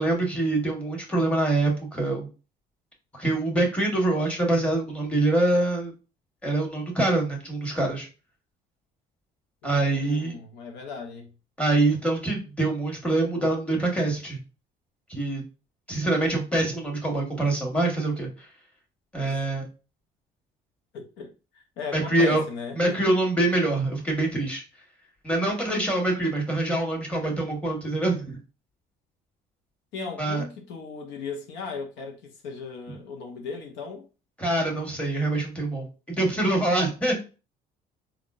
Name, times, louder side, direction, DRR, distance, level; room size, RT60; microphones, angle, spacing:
voice 1, 0.0-2.3 3.1-5.9 6.4-8.1 9.6-10.3 11.6-14.4 15.1-15.4 15.9-18.3 19.1-19.7 21.9-22.4 22.7-24.6 25.2-28.4 30.2-30.4 34.4-37.2, right 2 dB, 5° left, 1.4 m, -25 dB
voice 2, 9.6-11.3 19.2-19.4 20.9-23.2 29.9-34.1, left 4 dB, 80° left, 0.7 m, -37 dB
3.6 x 2.4 x 2.5 m
supercardioid pair, 80°, 18 cm